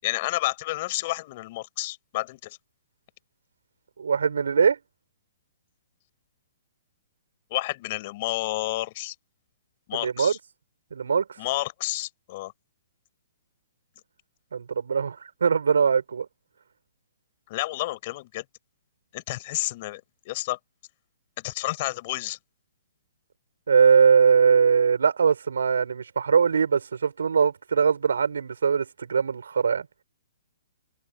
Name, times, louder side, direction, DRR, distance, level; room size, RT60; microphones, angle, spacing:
voice 1, 0.0-2.6 7.5-9.1 9.9-10.4 11.4-12.5 17.5-18.4 19.1-20.0 20.2-20.6 21.4-22.4, left 19 dB, 40° left, 5.2 m, -30 dB
voice 2, 4.0-4.8 9.9-10.3 10.9-11.2 14.5-15.2 15.4-16.3 23.7-29.9, right 6 dB, 85° right, 5.9 m, -21 dB
open air
hypercardioid pair, 150°, 0 cm